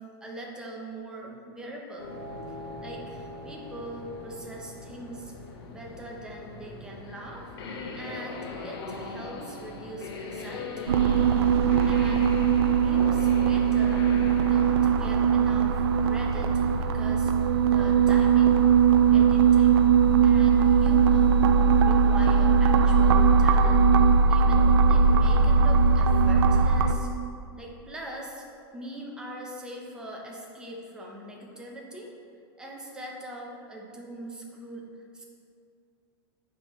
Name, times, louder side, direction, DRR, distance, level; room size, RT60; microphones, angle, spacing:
voice 1, 0.0-2.2 2.8-5.3 5.7-7.5 7.9-11.1 11.9-12.4 12.8-14.1 14.4-17.3 17.6-18.6 19.1-19.9 20.2-21.4 21.8-23.9 24.3-27.1 27.6-28.4 28.7-32.1 32.6-35.2, right 1 dB, 5° right, -2 dB, 0.7 m, -42 dB
sound 1, 2.0-21.8, left 3 dB, 70° left, 0.9 m, -41 dB
sound 2, 10.9-27.0, right 6 dB, 90° right, 0.4 m, -20 dB
7.6 x 5.3 x 3.1 m, 2.4 s
supercardioid pair, 165°, 14 cm